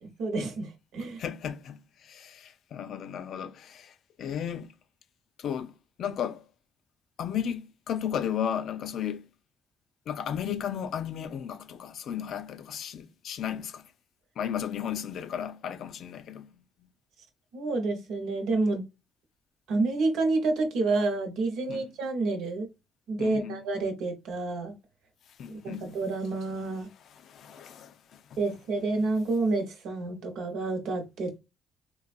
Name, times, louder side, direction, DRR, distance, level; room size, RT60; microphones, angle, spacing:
voice 1, 0.0-1.2 17.5-18.8 19.7-22.7 23.1-24.7 25.5-26.9 28.4-31.4, right 3 dB, 85° right, 1.0 m, -29 dB
voice 2, 1.2-4.7 5.4-6.4 7.2-9.3 10.1-13.9 14.4-16.9 21.7-21.9 23.2-23.6 25.4-25.9 27.1-28.4, left 9 dB, 70° left, 0.4 m, -35 dB
3.8 x 2.3 x 2.5 m
cardioid pair, 90°, 0 cm